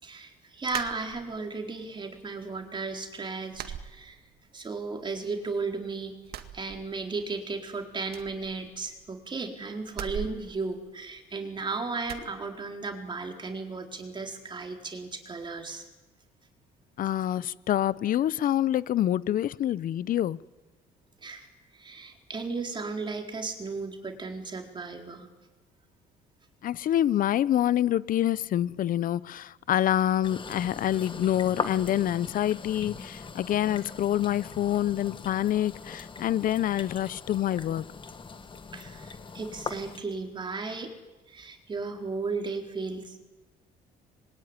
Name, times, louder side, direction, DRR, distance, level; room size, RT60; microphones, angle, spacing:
voice 1, 0.0-4.2 4.5-6.2 6.5-15.8 21.2-25.3 38.7-40.9 41.3-43.1, right 4 dB, 25° right, 4.2 m, -35 dB
sound 1, 0.7-1.6 2.0-2.7 2.9-3.1 3.5-4.7 5.0-5.8 6.2-7.4 7.6-7.7 8.0-9.2 9.9-11.5 12.0-12.3, right 9 dB, 70° right, 2.0 m, -41 dB
voice 2, 17.0-20.4 26.6-37.8, left 11 dB, 55° left, 0.8 m, -26 dB
sound 2, 30.2-40.0, left 5 dB, 30° left, 1.7 m, -40 dB
26.0 x 22.5 x 9.9 m
cardioid pair, 110°, 17 cm